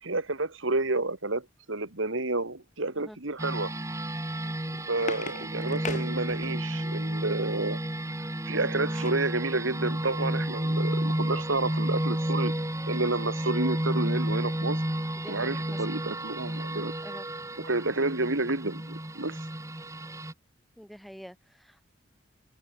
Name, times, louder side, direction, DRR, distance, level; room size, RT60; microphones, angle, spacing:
voice 1, 0.0-3.7 4.9-7.8 8.5-12.5 12.9-14.8 15.3-16.9 17.6-19.5, right 2 dB, 70° right, 2.4 m, -30 dB
sound 1, 3.4-20.3, right 1 dB, 15° right, 1.8 m, -31 dB
sound 2, 4.4-6.9 8.4-9.3 9.8-9.9 10.1-10.4, left 4 dB, 35° left, 2.0 m, -40 dB
voice 2, 15.2-15.8 17.0-17.3 20.8-21.8, equal, ahead, 2.0 m, -46 dB
head